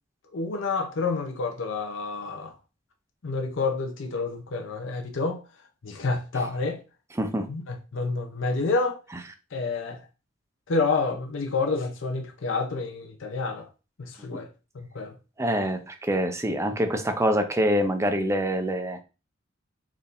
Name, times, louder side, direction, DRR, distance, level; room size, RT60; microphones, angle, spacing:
voice 1, 0.3-2.5 3.2-5.4 5.8-6.8 7.5-9.0 9.5-10.0 10.7-13.7 14.0-14.5 14.7-15.2, left 3 dB, 70° left, 0.6 m, -28 dB
voice 2, 7.2-7.5 14.3-14.4 15.4-19.0, equal, 15° right, 0.5 m, -25 dB
4.5 x 3.5 x 2.5 m
head